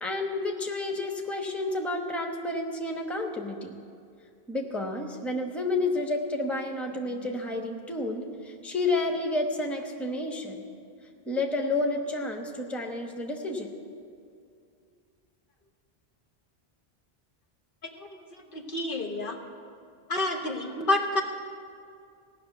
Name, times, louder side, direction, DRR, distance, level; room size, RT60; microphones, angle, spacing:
voice 1, 0.0-3.8 4.5-10.6 11.3-13.7, left 2 dB, ahead, 2 dB, 1.0 m, -30 dB
voice 2, 18.0-19.4 20.1-21.2, left 2 dB, 60° left, 2 dB, 1.3 m, -29 dB
17.0 x 6.4 x 9.1 m, 2.4 s
omnidirectional pair, 1.0 m